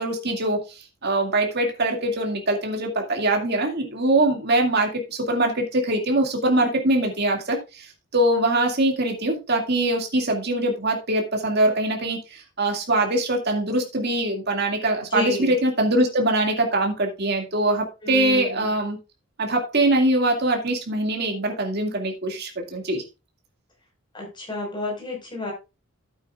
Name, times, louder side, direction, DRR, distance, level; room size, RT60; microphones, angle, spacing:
voice 1, 0.0-7.9 8.1-19.0 19.4-23.0, right 1 dB, 50° right, 2 dB, 2.3 m, -23 dB
voice 2, 15.1-15.6 18.0-18.7 24.1-25.5, left 2 dB, 20° left, 0 dB, 5.0 m, -30 dB
12.0 x 8.8 x 2.5 m, 0.27 s
head